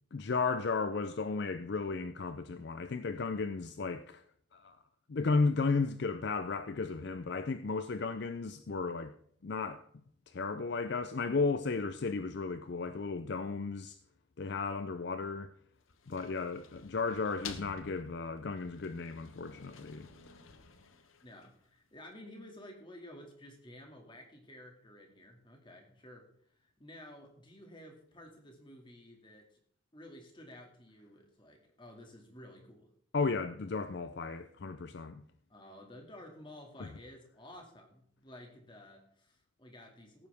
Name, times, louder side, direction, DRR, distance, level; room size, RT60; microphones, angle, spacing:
voice 1, 0.1-4.2 4.5-4.8 5.1-9.1 9.4-9.8 10.3-14.0 14.4-15.5 16.1-20.3 33.1-35.2 36.8-36.9, left 4 dB, 55° left, 0.5 m, -34 dB
sound 1, 15.8-21.8, left 5 dB, 80° left, 1.1 m, -51 dB
voice 2, 21.2-26.3 26.6-29.6 29.9-32.9 35.5-40.3, left 1 dB, 25° left, 2.3 m, -53 dB
16.5 x 9.3 x 3.5 m
head